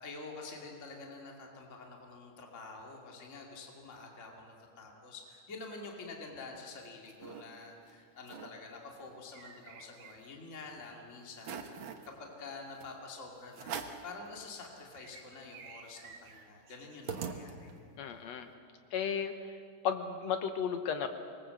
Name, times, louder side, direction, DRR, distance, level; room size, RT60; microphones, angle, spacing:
voice 1, 0.0-13.8 14.0-17.7, left 3 dB, 25° left, 0 dB, 2.6 m, -48 dB
sound 1, 6.6-7.4 7.9-8.0 8.2-8.5 8.9-10.5 10.9-11.0 11.4-12.1 12.8-12.9 13.5-14.1 14.6-14.7 14.9-17.9, right 6 dB, 55° right, 1.6 m, -44 dB
voice 2, 18.0-18.5 18.9-19.3 19.8-21.1, left 7 dB, 65° left, 8 dB, 2.0 m, -33 dB
25.0 x 21.0 x 7.8 m, 2.3 s
omnidirectional pair, 3.6 m